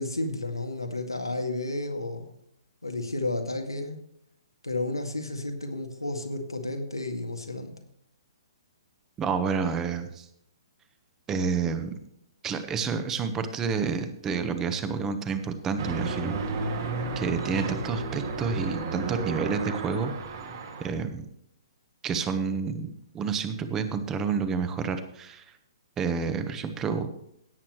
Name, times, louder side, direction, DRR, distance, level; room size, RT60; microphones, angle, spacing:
voice 1, 0.0-2.3 2.8-4.0 4.6-7.7, left 2 dB, 85° left, 4 dB, 2.0 m, -32 dB
voice 2, 9.2-10.3 11.3-11.9 12.4-16.4 17.2-20.1 20.8-21.3 22.0-25.4 26.0-27.1, right 5 dB, 15° right, 9 dB, 1.2 m, -29 dB
sound 1, 15.8-20.9, right 3 dB, 50° right, 2.2 m, -32 dB
17.0 x 8.7 x 3.2 m, 0.73 s
figure-of-eight pair, 120°, 2 cm